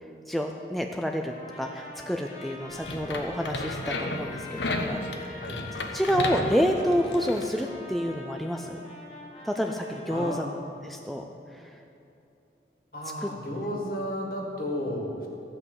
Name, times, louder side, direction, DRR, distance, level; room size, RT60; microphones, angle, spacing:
voice 1, 0.3-5.5 5.9-8.8 9.4-10.4 10.8-11.2 13.2-13.3, equal, ahead, 3 dB, 0.4 m, -28 dB
Trumpet, 1.3-10.3, left 2 dB, 35° left, 1.8 m, -44 dB
sound 1, 2.7-7.5, left 2 dB, 85° left, 1.1 m, -33 dB
voice 2, 10.1-10.6 12.9-15.3, equal, 55° left, 0 dB, 2.1 m, -33 dB
14.5 x 5.4 x 8.0 m, 2.8 s
head